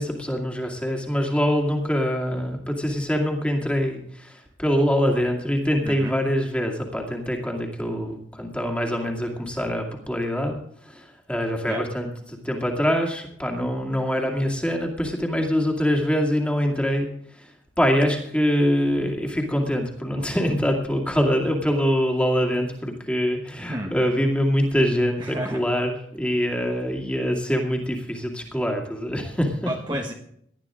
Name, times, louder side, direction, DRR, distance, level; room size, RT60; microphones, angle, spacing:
voice 1, 0.0-17.5 17.8-29.7, equal, 5° left, 1 dB, 2.3 m, -24 dB
voice 2, 5.8-6.2 11.7-11.8 23.7-23.9 25.2-25.6 29.7-30.1, right 1 dB, 25° right, 0 dB, 1.2 m, -31 dB
19.0 x 12.0 x 3.7 m, 0.68 s
head